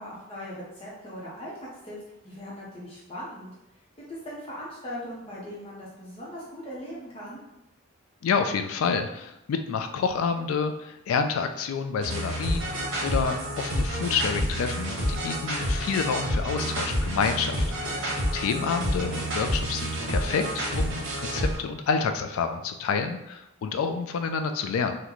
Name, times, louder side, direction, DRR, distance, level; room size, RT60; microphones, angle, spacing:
voice 1, 0.0-2.0 2.2-3.5 4.0-7.4 17.8-18.1, equal, 25° left, -6 dB, 0.6 m, -39 dB
voice 2, 8.2-25.0, left 5 dB, 85° left, 8 dB, 0.3 m, -28 dB
sound 1, 12.0-21.6, equal, 70° right, 1.2 m, -29 dB
3.7 x 2.1 x 3.0 m, 0.89 s
head